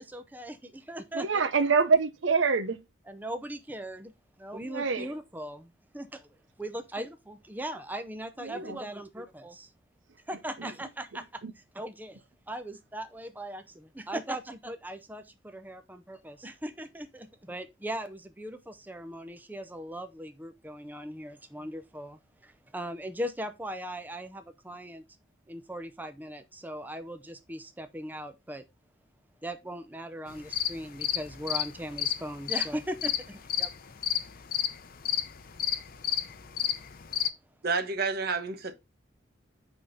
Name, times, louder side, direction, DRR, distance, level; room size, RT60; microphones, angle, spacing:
voice 1, 0.0-1.4 3.1-4.1 4.4-6.3 6.6-9.7 10.3-12.2 12.5-25.0 25.5-28.6 29.4-33.7, right 1 dB, 10° right, 0.6 m, -39 dB
voice 2, 1.1-2.8 4.7-5.1 8.4-8.8 11.4-11.5, right 5 dB, 75° right, 0.7 m, -25 dB
sound 1, 30.3-37.3, left 10 dB, 50° left, 0.6 m, -31 dB
voice 3, 37.6-38.7, right 4 dB, 55° right, 1.0 m, -29 dB
9.1 x 3.5 x 4.0 m
head